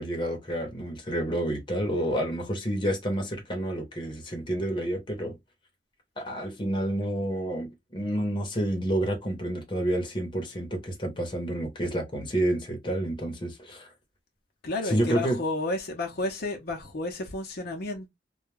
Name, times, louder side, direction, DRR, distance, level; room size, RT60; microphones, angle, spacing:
voice 1, 0.0-5.4 6.2-13.9 14.8-15.4, right 1 dB, 30° left, 0.8 m, -29 dB
voice 2, 14.6-18.1, left 2 dB, 60° left, 0.6 m, -31 dB
2.2 x 2.2 x 3.1 m
head